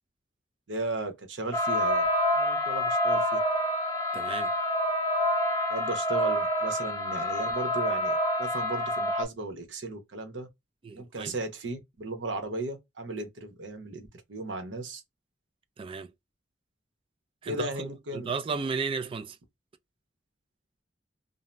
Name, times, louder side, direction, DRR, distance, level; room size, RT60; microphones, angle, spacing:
voice 1, 0.7-3.4 5.7-10.5 11.0-15.0 17.4-18.3, right 2 dB, 80° right, 0.8 m, -36 dB
sound 1, 1.5-9.2, left 1 dB, 20° left, 0.7 m, -27 dB
voice 2, 4.1-4.5 10.8-11.3 15.8-16.1 17.4-19.4, right 5 dB, 30° right, 0.3 m, -34 dB
2.7 x 2.0 x 3.2 m
head